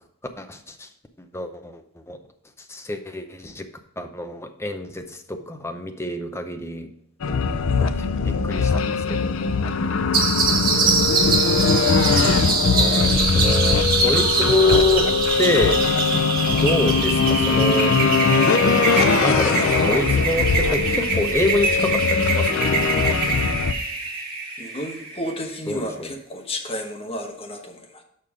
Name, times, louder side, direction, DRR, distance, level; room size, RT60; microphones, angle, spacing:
voice 1, 0.4-0.9 1.3-1.8 2.1-2.2 2.7-3.7 4.0-6.9 7.7-9.4 11.4-11.8 12.7-15.1 15.4-15.8 16.6-18.0 19.2-22.8 25.7-26.1, left 1 dB, 10° left, 6 dB, 0.6 m, -26 dB
sound 1, 7.2-23.7, left 5 dB, 70° left, 0.5 m, -21 dB
sound 2, 10.1-25.4, right 4 dB, 45° right, 1.7 m, -24 dB
voice 2, 24.6-28.0, equal, 30° left, 2 dB, 1.1 m, -32 dB
6.7 x 5.4 x 4.9 m, 0.72 s
head